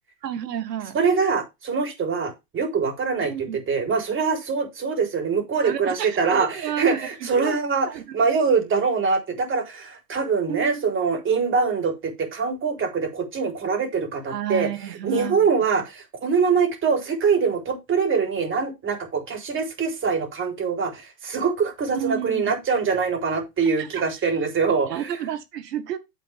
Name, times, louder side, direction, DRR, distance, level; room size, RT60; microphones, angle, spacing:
voice 1, 0.2-1.0 3.2-3.6 5.6-6.2 6.5-7.1 7.4-7.6 7.8-8.0 10.5-10.8 14.3-15.4 21.9-22.5 23.8-24.0 24.9-26.0, right 10 dB, 75° right, 1.9 m, -31 dB
voice 2, 0.9-7.9 8.1-25.2, right 5 dB, 25° right, 3.8 m, -24 dB
9.6 x 7.7 x 3.5 m
hypercardioid pair, 105°, 49 cm